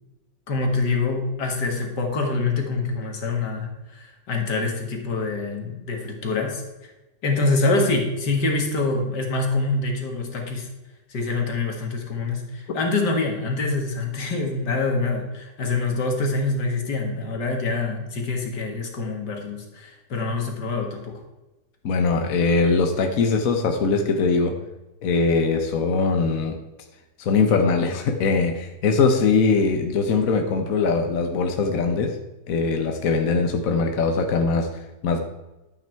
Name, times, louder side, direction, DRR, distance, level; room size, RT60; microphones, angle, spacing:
voice 1, 0.5-6.6 7.2-10.7 11.1-21.1, left 3 dB, 75° left, 3 dB, 2.4 m, -25 dB
voice 2, 21.8-24.6 25.0-26.6 27.2-32.2 32.5-34.7 35.0-35.2, left 4 dB, 55° left, 4 dB, 1.3 m, -21 dB
12.0 x 8.6 x 4.5 m, 1.1 s
omnidirectional pair, 1.9 m